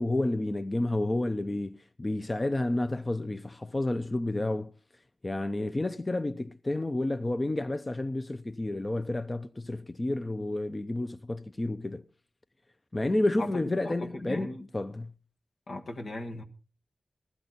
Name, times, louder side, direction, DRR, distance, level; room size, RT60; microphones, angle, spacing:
voice 1, 0.0-4.7 5.2-12.0 12.9-15.1, left 2 dB, 30° left, 0.6 m, -30 dB
voice 2, 13.8-14.7 15.7-16.4, left 2 dB, 80° left, 1.5 m, -37 dB
16.0 x 12.5 x 4.1 m
cardioid pair, 55°, 0 cm